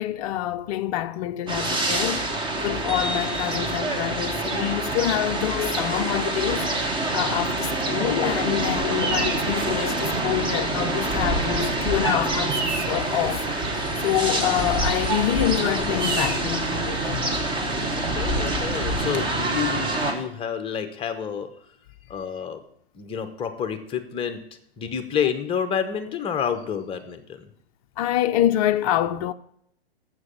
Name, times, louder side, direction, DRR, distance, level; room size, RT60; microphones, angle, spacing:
voice 1, 0.0-2.3 2.6-6.7 7.1-13.5 14.0-17.3 28.0-29.3, left 12 dB, 35° left, 0.5 m, -26 dB
sound 1, 1.5-20.1, right 2 dB, 15° right, 1.3 m, -26 dB
Bird vocalization bird call bird song, 8.5-19.0, right 1 dB, 35° right, 1.8 m, -32 dB
voice 2, 17.9-21.5 22.1-22.6 22.9-24.4 24.8-27.5, left 8 dB, 15° left, 0.9 m, -29 dB
7.7 x 6.3 x 7.4 m
hypercardioid pair, 120°, 31 cm